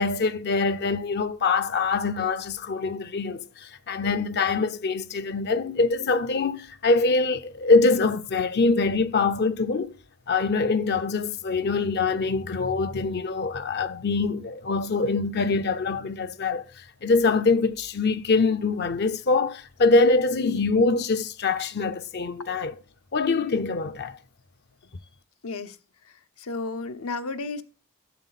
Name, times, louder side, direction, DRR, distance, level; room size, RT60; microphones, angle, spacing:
voice 1, 0.0-9.9 10.3-22.8 23.1-24.2, left 3 dB, 50° left, 0.6 m, -24 dB
voice 2, 25.4-25.8 26.4-27.6, left 3 dB, 85° left, 0.9 m, -32 dB
11.0 x 7.4 x 4.1 m
head